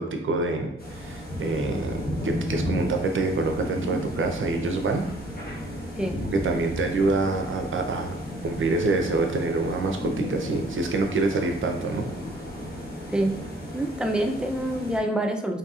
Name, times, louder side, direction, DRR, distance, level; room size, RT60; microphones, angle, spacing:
voice 1, 0.0-5.1 6.3-12.1, right 3 dB, 70° right, 4 dB, 0.5 m, -26 dB
sound 1, 0.8-15.0, equal, 45° left, 1.0 m, -34 dB
voice 2, 13.7-15.6, right 1 dB, 5° right, 3 dB, 0.4 m, -26 dB
2.8 x 2.7 x 2.3 m, 0.77 s
cardioid pair, 50°, 21 cm